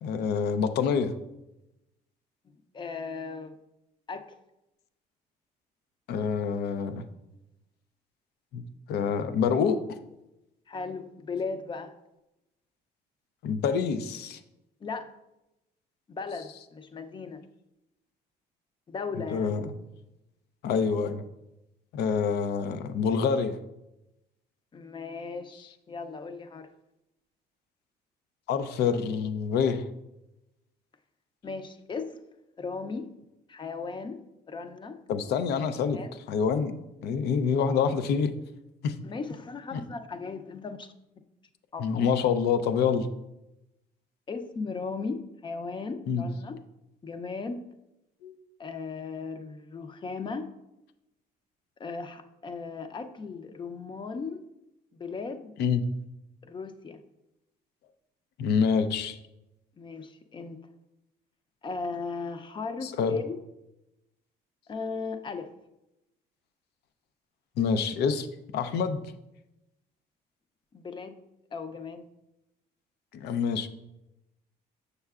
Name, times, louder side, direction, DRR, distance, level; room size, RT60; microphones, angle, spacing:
voice 1, 0.0-1.1 6.1-7.0 8.5-8.6 8.9-9.8 13.4-14.4 19.3-19.7 20.6-21.2 21.9-23.6 28.5-29.9 35.1-36.0 36.3-38.3 38.8-39.0 39.7-39.8 41.8-43.1 46.1-46.3 48.2-48.3 55.6-55.8 58.4-59.2 62.8-63.1 67.6-68.3 68.5-69.0 73.1-73.7, left 6 dB, 75° left, 10 dB, 0.5 m, -26 dB
voice 2, 2.7-3.6 4.1-4.2 10.7-11.9 14.8-15.1 16.1-17.4 18.9-19.5 24.7-26.7 31.4-32.2 32.6-33.1 33.5-34.2 34.5-35.0 35.9-36.1 39.0-40.9 41.7-41.9 44.3-46.6 47.0-47.7 48.6-50.5 51.8-54.4 54.9-55.5 56.4-57.0 59.8-60.6 61.6-63.4 64.7-65.5 70.7-71.2 71.5-72.1, left 4 dB, 30° left, 9 dB, 0.5 m, -36 dB
6.6 x 6.5 x 2.4 m, 0.92 s
cardioid pair, 110°, 17 cm